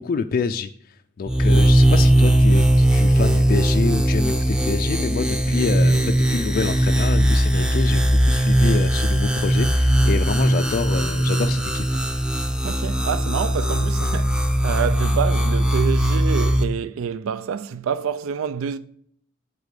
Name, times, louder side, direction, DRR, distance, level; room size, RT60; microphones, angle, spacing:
voice 1, 0.0-12.0, left 5 dB, 45° left, 0.3 m, -27 dB
sound 1, 1.3-16.6, right 1 dB, 5° right, 0.6 m, -19 dB
voice 2, 12.6-18.8, right 7 dB, 85° right, 0.4 m, -27 dB
8.2 x 4.1 x 6.6 m
head